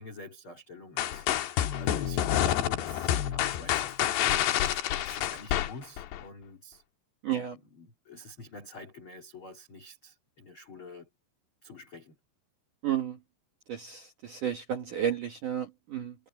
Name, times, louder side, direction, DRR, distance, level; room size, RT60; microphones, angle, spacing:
voice 1, 0.0-4.8 5.0-6.8 7.5-11.1 11.6-12.2, left 3 dB, 30° left, 2.8 m, -47 dB
sound 1, 1.0-6.2, left 11 dB, 70° left, 3.0 m, -28 dB
voice 2, 7.2-7.6 12.8-13.2 13.7-16.2, right 10 dB, 60° right, 2.3 m, -32 dB
omnidirectional pair, 5.8 m